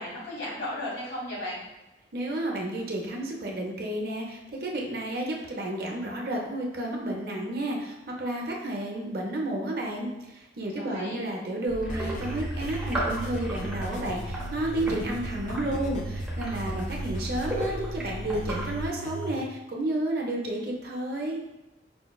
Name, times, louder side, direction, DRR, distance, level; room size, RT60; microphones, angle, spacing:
voice 1, 0.0-1.6 10.8-11.2, left 1 dB, 75° left, -6 dB, 1.3 m, -35 dB
voice 2, 2.1-21.4, right 1 dB, 55° right, -1 dB, 0.6 m, -31 dB
sound 1, 11.7-18.9, right 1 dB, 5° right, 0.6 m, -35 dB
sound 2, 11.9-19.4, right 1 dB, 40° left, 0.3 m, -37 dB
5.0 x 2.1 x 2.2 m, 0.98 s
head